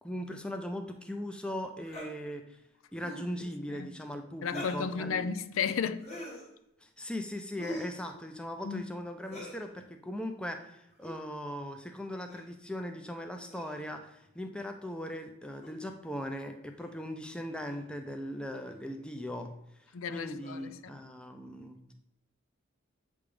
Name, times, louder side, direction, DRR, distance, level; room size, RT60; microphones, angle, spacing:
voice 1, 0.0-2.6 2.9-5.3 6.8-19.5 20.1-21.9, equal, 5° left, 0.5 m, -39 dB
sound 1, 1.8-2.1 2.9-3.3 4.4-4.9 6.0-6.5 7.6-8.0 9.2-9.6 10.9-11.2 12.3-12.5 13.5-13.9 15.6-15.7 16.8-16.9 17.6-17.8 18.6-18.8 20.4-20.8, left 1 dB, 30° left, 1.6 m, -44 dB
voice 2, 4.4-6.1 8.6-8.8 19.9-21.0, left 6 dB, 70° left, 0.4 m, -34 dB
8.0 x 3.6 x 5.0 m
head